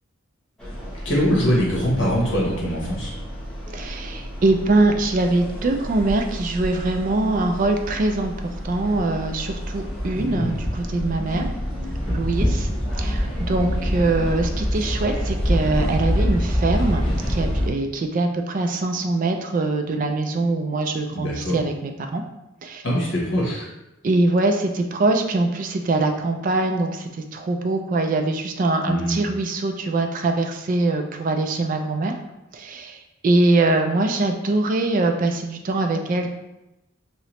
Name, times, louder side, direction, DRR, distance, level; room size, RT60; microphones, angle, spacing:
sound 1, 0.6-17.7, equal, 5° left, 0.8 m, -27 dB
voice 1, 1.0-3.1 10.1-10.6 21.1-21.6 22.8-23.6 28.8-29.2, equal, 60° left, -4 dB, 1.1 m, -23 dB
voice 2, 3.7-8.3 8.6-11.5 12.1-12.7 13.0-17.0 17.3-22.2 22.6-22.8 24.0-32.1 32.5-36.3, right 2 dB, 40° right, 4 dB, 0.3 m, -23 dB
3.0 x 2.8 x 3.0 m, 0.96 s
head